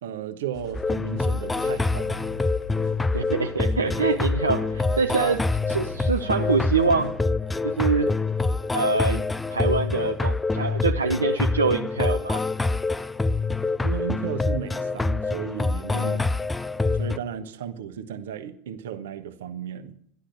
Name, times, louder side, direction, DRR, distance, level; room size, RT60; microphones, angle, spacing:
voice 1, 0.0-2.2 13.8-16.1 16.9-20.0, right 8 dB, 70° right, 1.2 m, -34 dB
sound 1, 0.5-7.2, left 5 dB, 50° left, 2.6 m, -41 dB
sound 2, 0.7-17.2, left 3 dB, 10° left, 0.5 m, -26 dB
voice 2, 3.1-7.1 7.6-8.1 8.7-9.2 9.5-12.4 15.9-16.3, right 4 dB, 85° right, 0.6 m, -25 dB
13.0 x 11.5 x 6.8 m
figure-of-eight pair, 80°, 0 cm